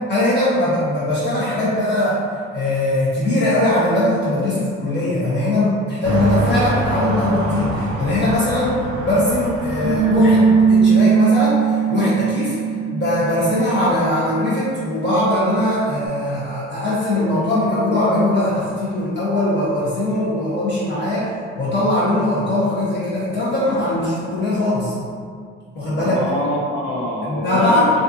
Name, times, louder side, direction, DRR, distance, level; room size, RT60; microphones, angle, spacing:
voice 1, 0.1-2.2 2.5-12.6 12.9-24.9 25.7-26.1 27.3-27.9, left 1 dB, 35° left, -10 dB, 0.7 m, -20 dB
sound 1, 6.0-10.9, right 2 dB, 70° right, 0.6 m, -26 dB
Bass guitar, 9.8-16.1, right 6 dB, 20° right, 0.6 m, -20 dB
voice 2, 25.9-27.9, equal, 80° left, -3 dB, 0.6 m, -25 dB
2.5 x 2.3 x 2.5 m, 2.1 s
cardioid pair, 90°, 30 cm